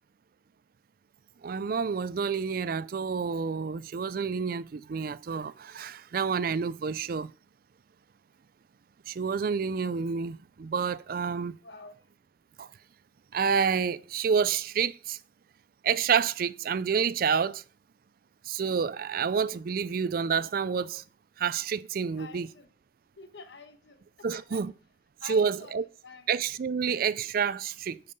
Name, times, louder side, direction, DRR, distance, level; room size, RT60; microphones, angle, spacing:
voice 1, 1.4-7.3 9.1-11.6 12.6-12.7 13.3-15.2 15.8-17.6 18.4-21.0 21.4-22.5 24.2-24.7 25.2-25.8 26.3-28.0, right 6 dB, 50° right, 0.4 m, -29 dB
voice 2, 11.6-12.0 22.2-22.7 23.2-24.6 25.2-25.8 26.0-26.3, left 4 dB, 70° left, 1.2 m, -47 dB
9.7 x 5.5 x 5.4 m
head